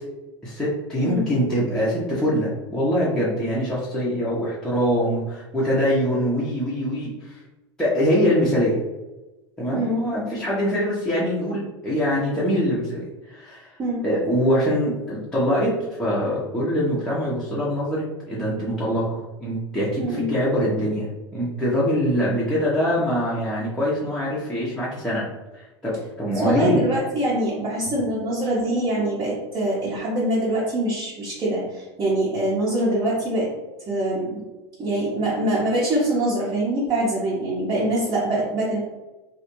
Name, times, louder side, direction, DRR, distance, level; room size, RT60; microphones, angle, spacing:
voice 1, 0.4-7.4 7.8-8.8 9.6-13.7 14.0-21.1 21.3-25.3 25.5-26.8, equal, 5° left, -9 dB, 0.8 m, -23 dB
voice 2, 9.7-10.0 13.8-14.0 20.0-20.3 26.4-33.5 33.9-34.4 34.8-38.8, right 1 dB, 25° right, -8 dB, 0.9 m, -24 dB
3.2 x 2.0 x 3.0 m, 1.1 s
figure-of-eight pair, 80°, 14 cm